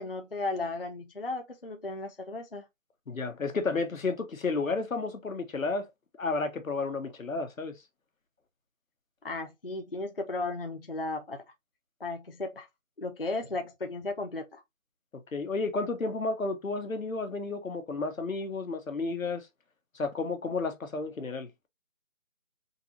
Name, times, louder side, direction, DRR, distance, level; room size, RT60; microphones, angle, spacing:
voice 1, 0.0-2.6 9.2-11.4 12.0-12.7 13.0-14.6, left 2 dB, 45° left, 0.4 m, -35 dB
voice 2, 3.1-5.9 6.2-7.7 15.3-19.5 19.9-21.5, left 3 dB, 85° left, 1.2 m, -32 dB
3.8 x 2.8 x 2.6 m
figure-of-eight pair, 175°, 39 cm